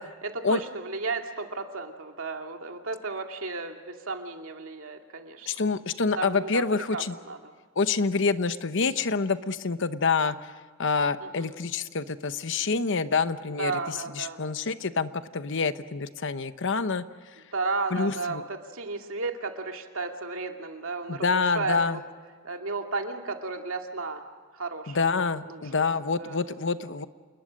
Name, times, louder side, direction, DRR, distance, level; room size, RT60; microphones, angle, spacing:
voice 1, 0.0-5.5 6.1-7.5 11.2-11.5 13.6-14.4 17.5-18.4 18.7-22.0 22.4-24.2 24.6-25.1 25.5-25.9 26.2-26.4, right 3 dB, 70° right, 3 dB, 2.4 m, -34 dB
voice 2, 5.5-7.2 7.8-10.5 10.8-17.0 17.9-18.4 21.1-22.0 24.9-27.1, left 4 dB, 60° left, 12 dB, 0.9 m, -27 dB
28.5 x 21.0 x 6.4 m, 1.5 s
head